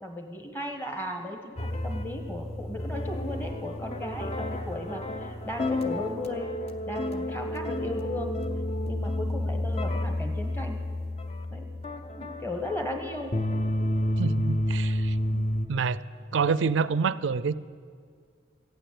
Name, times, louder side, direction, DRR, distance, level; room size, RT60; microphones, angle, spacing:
voice 1, 0.0-6.6 6.8-8.4 8.8-10.8 11.5-11.7 12.2-13.4 16.5-16.6, left 1 dB, 10° left, 4 dB, 1.3 m, -36 dB
sound 1, 1.6-15.7, left 1 dB, 35° left, 0.6 m, -30 dB
voice 2, 14.2-16.0 16.3-17.5, right 5 dB, 90° right, 17 dB, 0.4 m, -27 dB
14.5 x 9.1 x 8.5 m, 2.1 s
head